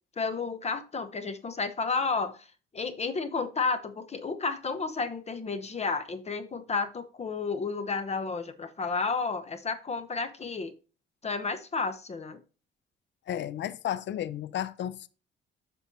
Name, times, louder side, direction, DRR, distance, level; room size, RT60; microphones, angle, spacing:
voice 1, 0.2-2.5 2.7-10.7 11.2-12.4, left 4 dB, 35° left, 0.8 m, -31 dB
voice 2, 13.3-15.1, left 11 dB, 65° left, 0.5 m, -33 dB
8.0 x 6.2 x 2.7 m
cardioid pair, 90°, 20 cm